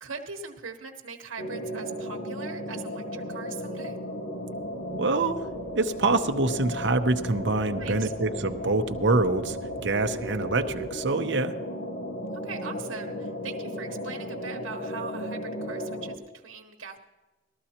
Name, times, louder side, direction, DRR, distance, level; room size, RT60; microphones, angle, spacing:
voice 1, 0.0-4.0 7.8-8.1 12.4-17.0, right 5 dB, 80° right, 1 dB, 1.2 m, -40 dB
sound 1, 1.4-16.2, equal, 85° left, 1.5 m, -35 dB
sound 2, 4.1-11.0, right 1 dB, 55° left, 5.6 m, -50 dB
voice 2, 4.9-5.4 5.7-11.5, right 2 dB, 60° right, 7 dB, 0.8 m, -25 dB
19.0 x 13.5 x 2.9 m, 1.1 s
head